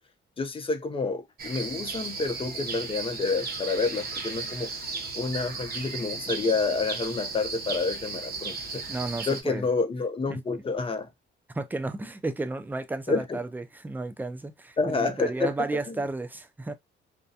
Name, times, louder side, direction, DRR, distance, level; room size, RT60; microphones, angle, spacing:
voice 1, 0.4-4.7 5.1-8.8 9.3-11.1 13.1-13.4 14.8-15.5 15.9-16.0, left 4 dB, 25° left, 0.6 m, -29 dB
sound 1, 1.4-9.4, right 4 dB, 50° right, 0.7 m, -35 dB
voice 2, 8.9-9.7 10.3-10.4 11.5-16.7, right 2 dB, 10° right, 0.4 m, -33 dB
2.4 x 2.2 x 2.7 m
cardioid pair, 90°, 20 cm